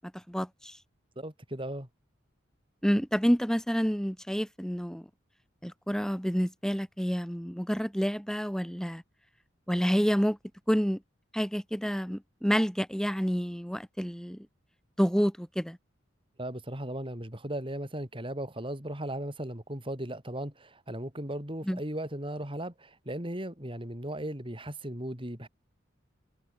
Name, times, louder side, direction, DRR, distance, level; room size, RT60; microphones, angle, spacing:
voice 1, 0.0-0.8 2.8-5.1 5.6-9.0 9.7-10.4 10.7-11.0 11.3-14.5 15.0-15.8 21.6-21.8, equal, 5° left, 2.7 m, -28 dB
voice 2, 1.2-1.9 16.4-25.5, right 1 dB, 25° right, 4.7 m, -37 dB
head